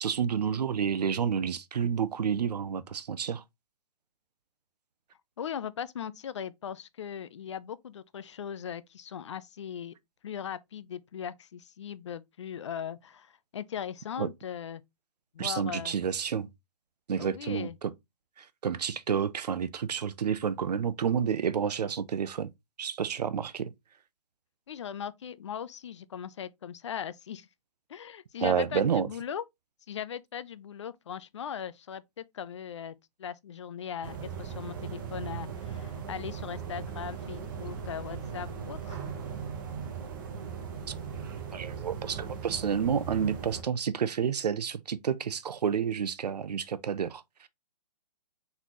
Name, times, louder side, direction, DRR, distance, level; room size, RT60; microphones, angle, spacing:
voice 1, 0.0-3.4 14.2-14.3 15.4-16.5 17.1-17.9 18.4-22.5 22.8-23.7 28.4-29.1 41.5-47.5, right 7 dB, 85° right, 0.7 m, -30 dB
voice 2, 5.4-9.9 10.2-14.8 15.3-16.0 17.2-17.8 24.7-27.5 27.9-29.4 29.9-39.0, left 8 dB, 45° left, 0.4 m, -39 dB
sound 1, 34.0-43.6, right 6 dB, 30° right, 0.9 m, -38 dB
4.2 x 4.0 x 2.9 m
hypercardioid pair, 170°, 20 cm